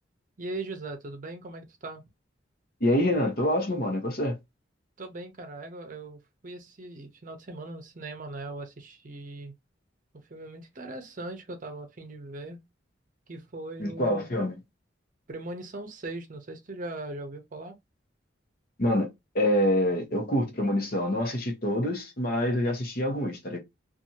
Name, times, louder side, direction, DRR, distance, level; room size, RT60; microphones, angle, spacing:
voice 1, 0.4-2.0 5.0-9.5 10.3-12.6 13.3-14.3 15.3-17.8, right 2 dB, 45° right, 0.6 m, -39 dB
voice 2, 2.8-4.4 13.8-14.5 18.8-19.1 19.3-23.6, left 1 dB, 50° left, 1.0 m, -26 dB
2.7 x 2.5 x 2.7 m
head